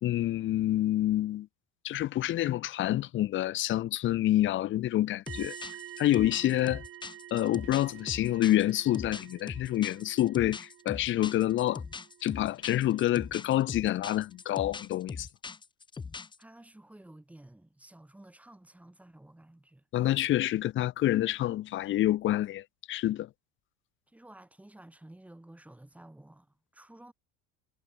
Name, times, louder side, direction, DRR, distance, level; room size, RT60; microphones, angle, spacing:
voice 1, 0.0-1.5 1.8-5.6 6.0-6.8 7.3-11.8 12.2-15.3 19.9-23.3, left 14 dB, 35° left, 1.3 m, -27 dB
sound 1, 5.3-16.4, left 5 dB, 15° left, 1.6 m, -41 dB
sound 2, 5.3-13.1 13.4-13.7, right 13 dB, 40° right, 6.4 m, -49 dB
voice 2, 16.4-19.9 24.1-27.1, right 1 dB, 5° right, 7.1 m, -53 dB
cardioid pair, 150°, 33 cm